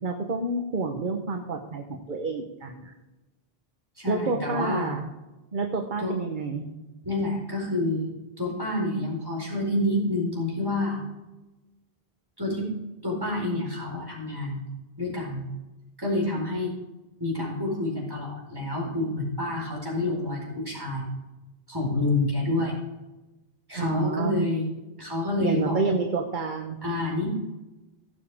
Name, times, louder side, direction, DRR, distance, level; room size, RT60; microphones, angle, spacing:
voice 1, 0.0-2.9 4.1-5.1 5.5-6.6 23.7-24.4 25.4-26.8, right 4 dB, 55° right, 3 dB, 1.2 m, -29 dB
voice 2, 4.0-5.0 6.0-6.1 7.0-11.0 12.4-12.7 13.0-14.6 15.0-15.5 16.0-16.7 17.2-21.1 21.7-22.8 23.7-24.7 25.0-25.8 26.8-27.3, left 2 dB, 20° right, -3 dB, 4.7 m, -28 dB
17.0 x 7.5 x 3.6 m, 1.1 s
omnidirectional pair, 1.0 m